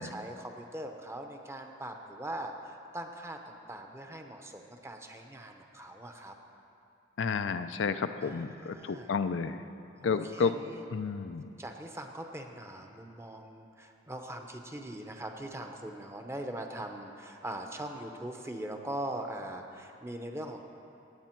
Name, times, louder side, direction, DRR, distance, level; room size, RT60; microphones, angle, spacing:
voice 1, 0.0-6.3 8.2-9.1 10.0-10.8 11.6-20.6, right 1 dB, 15° right, 4 dB, 0.8 m, -41 dB
voice 2, 7.2-9.6 10.0-10.5 10.9-11.5, left 5 dB, 75° left, 10 dB, 0.5 m, -31 dB
16.5 x 9.1 x 4.5 m, 2.7 s
head